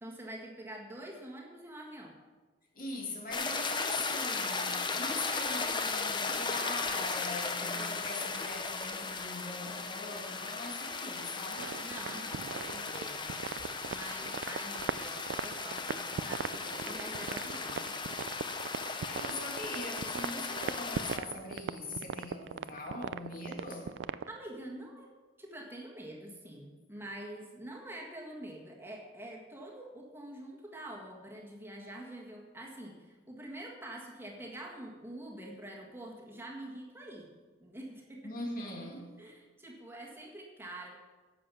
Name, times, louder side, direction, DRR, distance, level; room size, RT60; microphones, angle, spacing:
voice 1, 0.0-2.2 11.8-13.3 13.9-17.9 24.3-25.1 25.4-37.3 37.6-38.3 39.2-41.0, right 1 dB, 15° right, -2 dB, 1.7 m, -46 dB
voice 2, 2.7-11.7 19.1-24.0 38.2-39.2, left 2 dB, 50° left, 0 dB, 2.1 m, -41 dB
sound 1, 3.3-21.2, left 4 dB, 25° left, 0.7 m, -36 dB
sound 2, 11.6-24.4, right 7 dB, 85° right, 0.3 m, -39 dB
11.0 x 7.5 x 6.1 m, 1.4 s
head